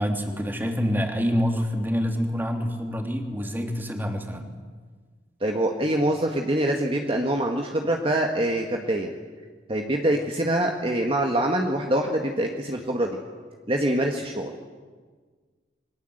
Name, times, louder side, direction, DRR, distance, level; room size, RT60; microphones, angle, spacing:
voice 1, 0.0-4.5, equal, 10° right, 3 dB, 3.0 m, -26 dB
voice 2, 5.4-9.1 9.7-13.2 13.7-14.5, right 1 dB, 30° right, 2 dB, 1.8 m, -24 dB
28.5 x 23.0 x 8.0 m, 1.5 s
head